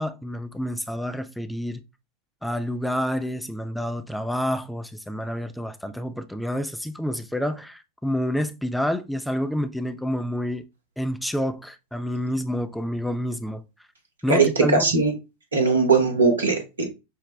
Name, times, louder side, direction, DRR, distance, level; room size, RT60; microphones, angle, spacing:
voice 1, 0.0-1.8 2.4-10.7 11.0-13.6 14.2-14.9, equal, ahead, 0.4 m, -28 dB
voice 2, 14.3-15.1 15.5-16.9, right 4 dB, 70° right, 1.0 m, -20 dB
6.1 x 2.1 x 3.0 m
figure-of-eight pair, 90°, 0 cm